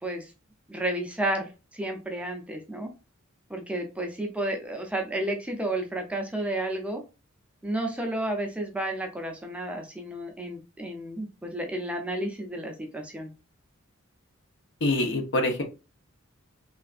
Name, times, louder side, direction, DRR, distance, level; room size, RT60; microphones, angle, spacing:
voice 1, 0.0-0.3 0.7-2.9 3.5-7.0 7.6-13.3, right 1 dB, 5° right, 3 dB, 0.4 m, -32 dB
voice 2, 14.8-15.6, left 1 dB, 55° left, 4 dB, 0.8 m, -25 dB
3.3 x 2.5 x 2.4 m, 0.30 s
head